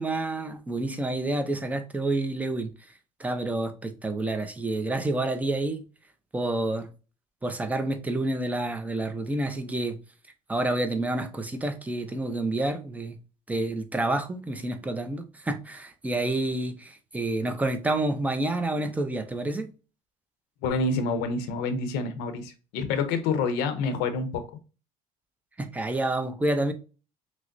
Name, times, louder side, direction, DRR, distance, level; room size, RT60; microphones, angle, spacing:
voice 1, 0.0-2.7 3.2-5.8 6.3-6.9 7.4-10.0 10.5-13.2 13.5-19.7 25.6-26.7, right 2 dB, 10° right, 0.5 m, -28 dB
voice 2, 20.6-24.4, left 4 dB, 85° left, 0.8 m, -27 dB
6.1 x 2.1 x 2.5 m
cardioid pair, 135°, 17 cm